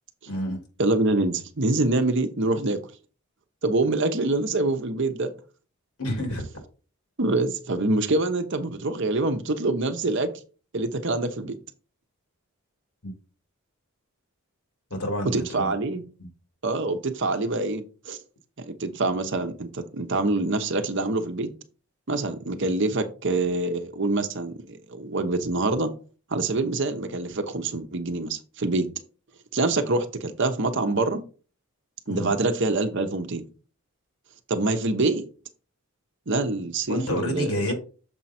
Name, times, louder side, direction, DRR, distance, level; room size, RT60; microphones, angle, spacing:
voice 1, 0.3-0.6 6.0-6.4 14.9-15.7 32.1-32.3 36.9-37.7, equal, 80° left, 4 dB, 2.5 m, -28 dB
voice 2, 0.8-2.8 3.6-5.3 7.2-10.3 10.7-11.5 15.3-16.0 16.6-18.2 18.6-21.5 22.1-25.9 26.3-28.9 29.5-31.2 32.1-33.4 34.5-35.2 36.3-37.7, right 2 dB, 55° right, 8 dB, 0.9 m, -25 dB
7.0 x 4.5 x 4.3 m, 0.36 s
head